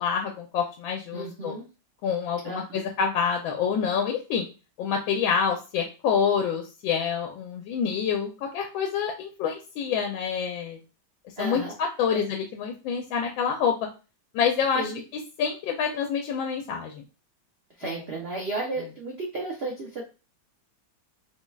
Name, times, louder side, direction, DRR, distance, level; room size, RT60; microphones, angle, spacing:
voice 1, 0.0-1.5 2.0-4.5 4.8-10.8 11.4-13.7 14.3-14.9 15.4-17.0 17.8-18.0, left 7 dB, 90° left, 2 dB, 1.3 m, -27 dB
voice 2, 1.1-1.7 2.4-2.8 11.4-11.7 12.1-12.2 14.7-15.0 17.8-20.0, right 2 dB, 85° right, -1 dB, 0.5 m, -33 dB
3.8 x 3.1 x 2.2 m, 0.32 s
omnidirectional pair, 2.1 m